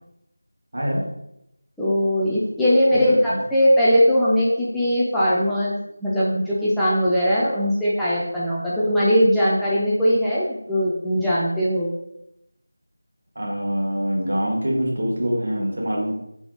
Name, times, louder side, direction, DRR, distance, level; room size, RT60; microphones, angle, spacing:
voice 1, 1.8-11.9, equal, ahead, -11 dB, 0.3 m, -20 dB
voice 2, 13.3-16.1, equal, 65° right, -2 dB, 1.3 m, -24 dB
3.5 x 2.9 x 3.7 m, 0.81 s
figure-of-eight pair, 175°, 0 cm